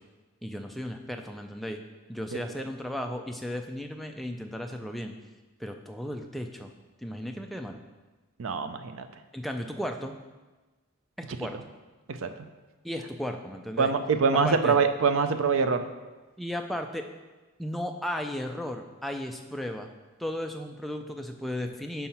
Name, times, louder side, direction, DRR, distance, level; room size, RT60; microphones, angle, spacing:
voice 1, 0.4-1.8 2.1-5.2 5.6-6.7 7.0-7.8 9.3-10.1 11.2-11.6 12.8-13.9 14.3-14.8 16.4-17.1 17.6-19.9 20.2-22.1, equal, ahead, 3 dB, 0.3 m, -35 dB
voice 2, 8.4-9.1 12.1-12.3 13.8-15.8, right 5 dB, 65° right, 9 dB, 0.4 m, -24 dB
5.6 x 5.5 x 4.3 m, 1.2 s
head